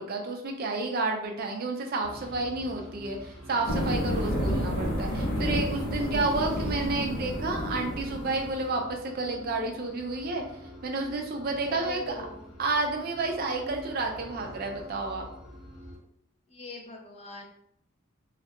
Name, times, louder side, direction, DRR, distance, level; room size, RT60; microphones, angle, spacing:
voice 1, 0.0-10.4 10.8-12.2 12.6-15.3, right 3 dB, 45° right, 2 dB, 0.4 m, -30 dB
sound 1, 2.0-16.0, equal, ahead, 0.8 m, -45 dB
sound 2, 3.7-8.6, equal, 90° left, 0.7 m, -30 dB
voice 2, 11.6-12.5 16.5-17.4, left 3 dB, 30° left, 0 dB, 0.4 m, -41 dB
2.3 x 2.1 x 2.9 m, 0.75 s
head